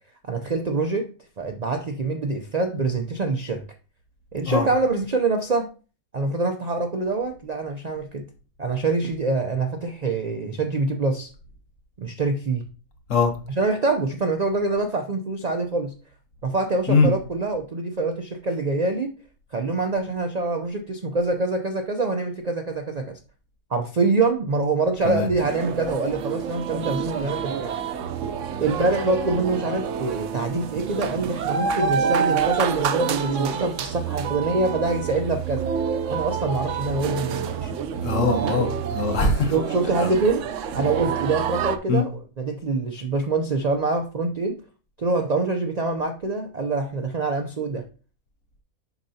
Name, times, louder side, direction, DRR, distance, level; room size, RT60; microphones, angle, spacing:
voice 1, 0.3-1.1 1.4-3.6 4.3-5.7 6.1-8.2 8.6-11.3 12.0-12.7 13.5-15.9 16.4-19.1 19.5-23.2 23.7-27.7 28.6-35.6 36.1-37.7 39.4-40.4 40.7-44.6 45.0-47.9, right 3 dB, 85° right, 0.3 m, -25 dB
sound 1, 25.4-41.8, right 7 dB, 65° right, 0.8 m, -28 dB
voice 2, 38.0-39.5 40.0-40.1 41.9-42.0, left 4 dB, 60° left, 1.3 m, -21 dB
6.8 x 5.6 x 2.7 m
omnidirectional pair, 1.6 m